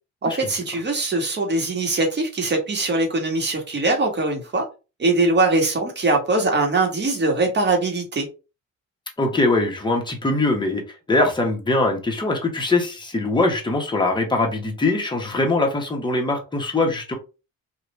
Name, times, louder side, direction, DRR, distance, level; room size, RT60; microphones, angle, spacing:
voice 1, 0.2-4.6 5.0-8.3, right 2 dB, 35° right, 1.2 m, -22 dB
voice 2, 9.2-10.8 11.1-17.1, left 2 dB, 15° left, 1.1 m, -22 dB
2.9 x 2.5 x 3.1 m
cardioid pair, 90°, 30 cm